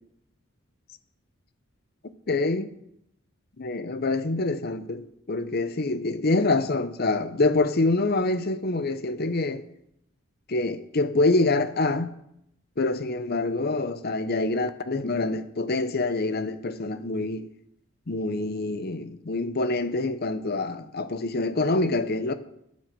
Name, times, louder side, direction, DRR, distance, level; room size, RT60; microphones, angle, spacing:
voice 1, 2.3-2.7 3.6-9.6 10.5-12.1 12.8-17.5 18.1-22.3, left 2 dB, 45° left, 0.7 m, -26 dB
9.5 x 7.6 x 6.7 m
head